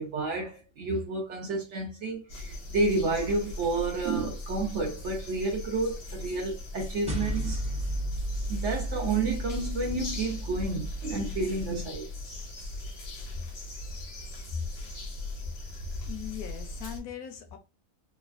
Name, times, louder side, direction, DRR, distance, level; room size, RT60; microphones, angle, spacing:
voice 1, 0.0-7.6 8.5-12.1, right 3 dB, 65° right, 0.8 m, -30 dB
sound 1, 2.3-17.0, left 2 dB, 85° left, 1.4 m, -39 dB
sound 2, 7.1-11.7, equal, 5° right, 0.6 m, -34 dB
voice 2, 16.0-17.6, left 8 dB, 70° left, 1.0 m, -40 dB
3.2 x 2.1 x 2.3 m
omnidirectional pair, 1.6 m